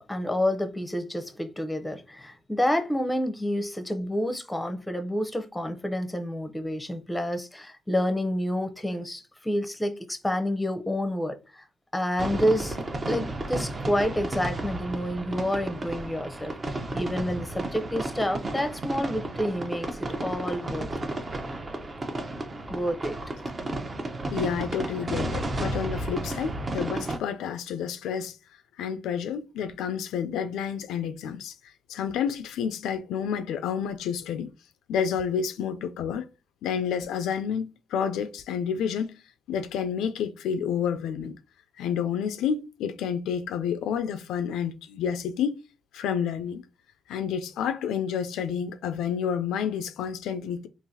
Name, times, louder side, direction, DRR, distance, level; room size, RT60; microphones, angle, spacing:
voice 1, 0.0-11.6 11.9-12.8 13.1-19.9 20.2-20.9 22.7-23.2, equal, 10° left, 0.6 m, -29 dB
sound 1, 12.2-27.2, right 2 dB, 30° right, 0.6 m, -33 dB
voice 2, 24.3-28.4 28.8-31.5 31.9-34.5 34.9-36.3 36.6-39.1 39.5-41.3 41.8-45.6 45.9-46.6 47.1-50.7, left 7 dB, 85° left, 0.3 m, -29 dB
3.8 x 2.5 x 2.7 m
cardioid pair, 90°, 0 cm